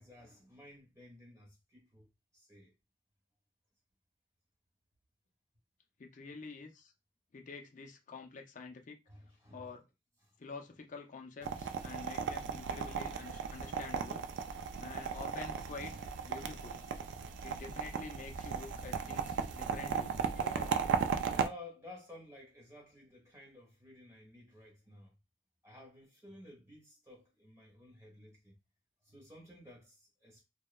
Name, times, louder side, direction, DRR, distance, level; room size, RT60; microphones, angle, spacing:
voice 1, 0.0-2.7 9.1-9.7 10.3-10.4 11.7-12.2 15.8-16.0 17.2-17.6 21.3-25.1 25.6-28.6 29.0-30.4, left 1 dB, 15° right, 1.2 m, -54 dB
voice 2, 6.0-6.9 7.3-9.0 9.5-9.8 10.4-14.3 14.8-16.8 17.4-20.8, left 4 dB, 45° left, 0.5 m, -48 dB
sound 1, 11.4-21.5, right 6 dB, 80° right, 0.3 m, -36 dB
2.9 x 2.0 x 2.2 m
head